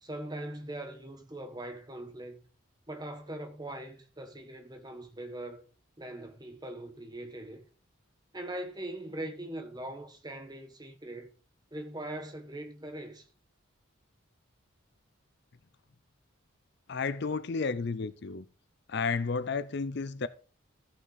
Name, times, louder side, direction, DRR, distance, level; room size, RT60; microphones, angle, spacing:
voice 1, 0.0-2.5 2.9-5.6 6.0-7.6 8.3-11.3 11.7-13.3, right 1 dB, 20° right, 1.2 m, -41 dB
voice 2, 16.9-18.5 18.9-20.3, left 4 dB, 50° left, 0.5 m, -32 dB
13.5 x 5.6 x 4.0 m
head